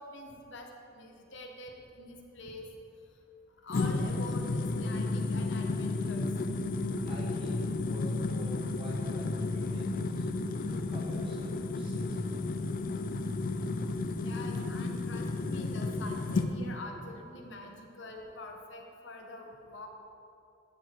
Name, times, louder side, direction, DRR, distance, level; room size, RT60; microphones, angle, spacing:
voice 1, 0.0-2.7 3.6-6.3 14.2-19.9, left 2 dB, 65° left, 2 dB, 1.0 m, -45 dB
sound 1, 3.7-16.5, left 3 dB, 45° left, 0.4 m, -32 dB
voice 2, 7.0-10.3 10.6-12.5, equal, 25° right, -3 dB, 1.3 m, -49 dB
12.5 x 4.8 x 4.5 m, 2.7 s
head